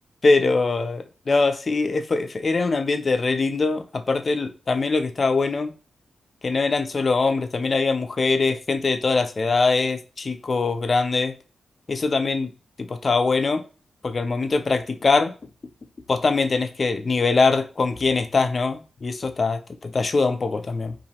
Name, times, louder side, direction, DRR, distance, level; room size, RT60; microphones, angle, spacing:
voice 1, 0.2-5.7 6.4-11.3 11.9-12.5 12.8-13.6 14.0-15.3 16.1-20.9, left 3 dB, 50° left, 7 dB, 0.5 m, -22 dB
2.7 x 2.6 x 2.9 m, 0.35 s
cardioid pair, 60°, 0 cm